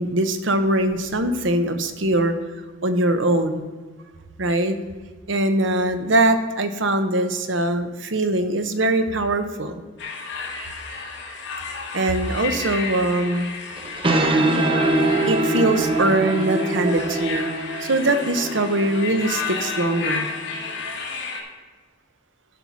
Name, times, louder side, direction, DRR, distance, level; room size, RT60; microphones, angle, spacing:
voice 1, 0.0-2.3 2.8-3.6 4.4-4.8 5.3-9.8 11.9-13.5 15.3-17.5 17.8-20.3, right 1 dB, 70° right, 8 dB, 0.9 m, -22 dB
sound 1, 10.0-21.4, left 4 dB, 60° left, 1.6 m, -32 dB
sound 2, 13.8-20.9, right 2 dB, 25° right, 0.7 m, -24 dB
11.5 x 5.5 x 6.1 m, 1.4 s
head